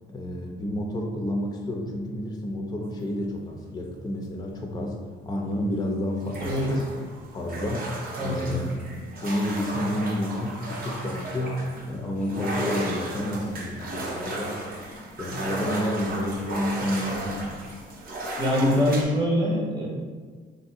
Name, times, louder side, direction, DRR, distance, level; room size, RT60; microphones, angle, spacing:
voice 1, 0.1-5.0 5.2-6.9 7.3-7.9 8.2-8.7 9.2-11.6 11.9-14.7 15.2-17.6, left 1 dB, 20° left, 1 dB, 0.4 m, -30 dB
sound 1, 6.2-19.0, right 1 dB, 45° right, 0.6 m, -35 dB
voice 2, 8.2-8.6 18.4-19.9, left 1 dB, 20° right, -3 dB, 0.9 m, -24 dB
3.2 x 2.7 x 2.4 m, 1.5 s
cardioid pair, 90°, 20 cm